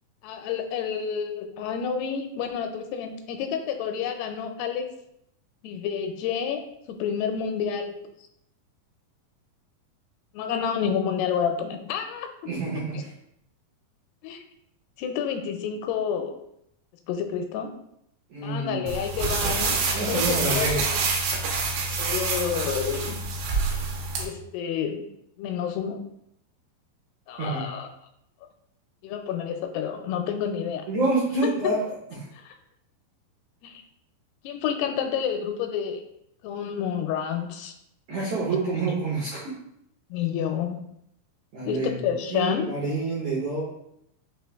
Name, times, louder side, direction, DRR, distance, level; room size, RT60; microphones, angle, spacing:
voice 1, 0.2-4.9 5.6-6.6 6.9-8.0 10.3-12.3 12.9-13.0 14.2-14.4 15.0-16.4 17.1-17.7 18.4-19.8 20.1-21.0 22.0-23.2 24.2-25.0 25.4-26.0 27.3-27.9 29.0-30.9 31.4-31.5 32.3-32.6 33.6-33.8 34.4-36.0 36.4-37.7 40.1-40.8 41.7-42.7, left 7 dB, 85° left, 6 dB, 2.5 m, -29 dB
voice 2, 12.4-13.1 18.3-18.8 19.9-20.7 27.4-27.6 30.9-31.8 38.1-39.5 41.5-43.6, right 2 dB, 75° right, -6 dB, 1.8 m, -27 dB
sound 1, 18.9-24.2, right 4 dB, 90° right, 2.8 m, -27 dB
6.2 x 2.4 x 3.4 m, 0.76 s
omnidirectional pair, 4.7 m